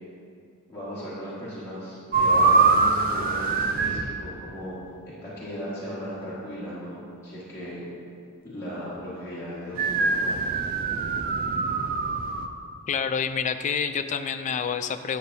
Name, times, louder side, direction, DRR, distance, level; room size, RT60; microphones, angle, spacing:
voice 1, 0.7-4.8 5.0-7.8 8.4-10.6, equal, 15° left, -12 dB, 1.6 m, -37 dB
sound 1, 2.1-4.1 9.8-12.5, right 4 dB, 40° right, 0.4 m, -23 dB
voice 2, 12.9-15.2, left 6 dB, 35° left, 9 dB, 0.3 m, -28 dB
9.9 x 7.0 x 2.7 m, 2.4 s
head